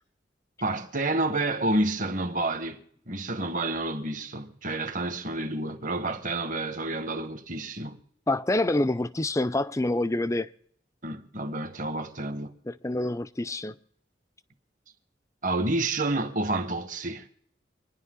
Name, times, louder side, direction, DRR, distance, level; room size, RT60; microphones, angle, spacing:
voice 1, 0.6-8.0 11.0-12.6 15.4-17.3, right 2 dB, 45° right, 1.3 m, -29 dB
voice 2, 8.3-10.5 12.7-13.8, left 2 dB, 15° left, 0.5 m, -27 dB
26.0 x 10.5 x 3.8 m
head